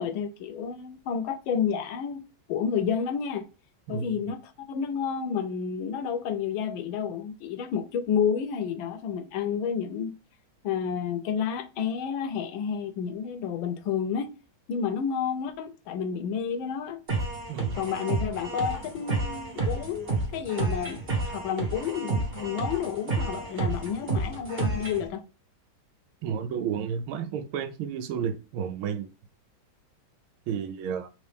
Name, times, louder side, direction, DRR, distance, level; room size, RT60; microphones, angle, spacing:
voice 1, 0.0-2.2 2.5-3.4 3.9-10.1 10.6-14.3 14.7-17.0 17.7-21.0 21.3-25.2, left 7 dB, 80° left, 1.3 m, -30 dB
voice 2, 3.9-4.2 17.5-17.8 26.2-29.1 30.5-31.1, right 7 dB, 85° right, 1.5 m, -32 dB
sound 1, 17.1-25.1, right 3 dB, 35° right, 1.2 m, -30 dB
3.7 x 3.2 x 3.4 m
omnidirectional pair, 2.2 m